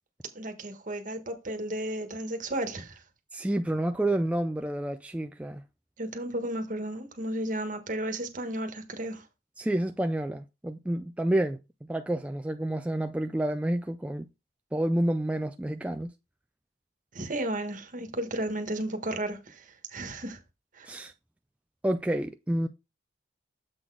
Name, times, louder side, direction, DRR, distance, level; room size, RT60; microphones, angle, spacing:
voice 1, 0.3-3.0 6.0-9.2 17.1-20.4 20.8-20.9, right 1 dB, 45° right, 1.3 m, -33 dB
voice 2, 3.3-5.6 9.6-14.3 14.7-16.1 20.8-21.1 21.8-22.7, right 1 dB, 5° right, 0.3 m, -29 dB
7.6 x 4.0 x 4.7 m
head